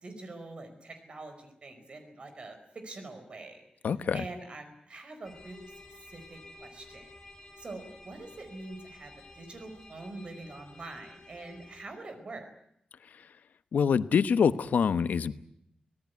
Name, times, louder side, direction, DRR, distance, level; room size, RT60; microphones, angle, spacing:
voice 1, 0.0-3.6 4.1-5.7 6.1-7.1 7.6-12.5, right 2 dB, 45° right, 7 dB, 4.9 m, -44 dB
voice 2, 3.8-4.2 13.7-15.3, left 6 dB, 90° left, 13 dB, 1.0 m, -25 dB
sound 1, 5.2-11.9, left 2 dB, 20° left, 6.4 m, -52 dB
25.0 x 18.0 x 9.5 m, 0.75 s
wide cardioid pair, 170°, 3 cm